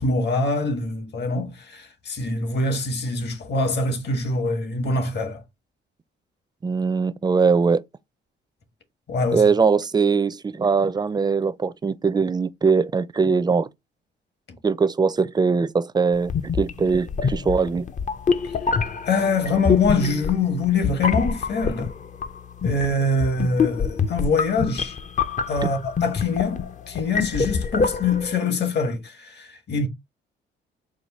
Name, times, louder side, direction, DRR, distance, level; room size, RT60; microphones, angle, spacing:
voice 1, 0.0-5.4 9.1-9.4 14.5-14.6 19.1-21.9 22.6-25.0 25.5-29.9, left 3 dB, 60° left, 1.5 m, -24 dB
voice 2, 6.6-7.8 9.3-13.7 14.6-16.3 16.6-17.8, right 5 dB, 20° right, 0.4 m, -21 dB
sound 1, 16.2-28.4, left 5 dB, 40° left, 0.5 m, -26 dB
4.8 x 2.2 x 4.2 m
cardioid pair, 90°, 20 cm